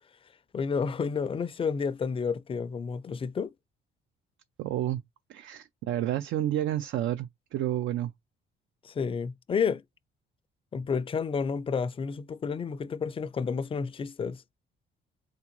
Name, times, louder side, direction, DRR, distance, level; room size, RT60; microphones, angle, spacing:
voice 1, 0.5-3.5 8.8-9.8 10.7-14.4, left 5 dB, 25° left, 0.4 m, -30 dB
voice 2, 4.6-5.0 5.3-8.1, right 12 dB, 75° right, 0.4 m, -30 dB
3.7 x 3.6 x 2.9 m
cardioid pair, 90°, 20 cm